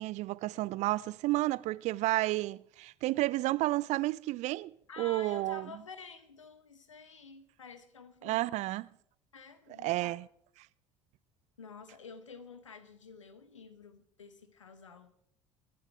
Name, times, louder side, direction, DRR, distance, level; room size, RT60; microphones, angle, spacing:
voice 1, 0.0-5.7 8.2-8.9 9.8-10.3, right 18 dB, 50° right, 0.4 m, -31 dB
voice 2, 4.9-8.6 9.3-10.1 11.6-15.1, left 5 dB, 85° left, 1.1 m, -50 dB
23.5 x 11.0 x 3.4 m
figure-of-eight pair, 60°, 16 cm